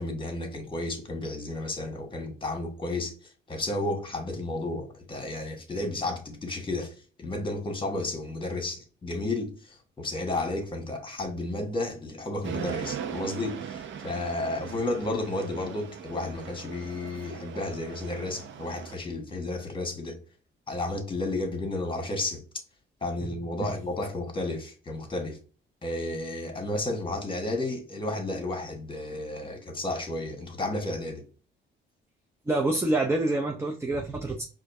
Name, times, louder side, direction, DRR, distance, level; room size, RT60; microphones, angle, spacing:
voice 1, 0.0-3.1 3.5-6.9 7.2-20.2 20.7-22.4 23.0-25.4 25.8-31.2, left 2 dB, 25° left, 1.4 m, -32 dB
sound 1, 12.4-18.9, right 7 dB, 70° right, 0.7 m, -39 dB
voice 2, 32.5-34.4, right 2 dB, 15° right, 0.6 m, -27 dB
4.9 x 2.6 x 2.6 m
cardioid pair, 90°, 20 cm